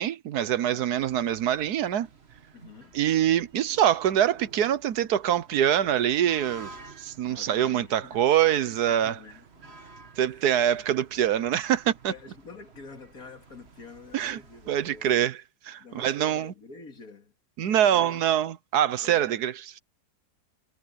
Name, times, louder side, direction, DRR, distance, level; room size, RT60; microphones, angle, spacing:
voice 1, 0.0-2.1 2.9-9.2 10.2-12.1 14.1-14.4 14.7-15.4 15.6-16.5 17.6-19.8, right 10 dB, 75° right, 1.4 m, -24 dB
voice 2, 0.7-1.0 2.5-3.0 7.3-8.3 9.0-9.8 10.2-10.5 12.1-15.1 15.8-18.2 19.0-19.2, left 4 dB, 65° left, 2.9 m, -48 dB
sound 1, 0.9-15.3, right 3 dB, 40° right, 1.7 m, -52 dB
omnidirectional pair, 1.7 m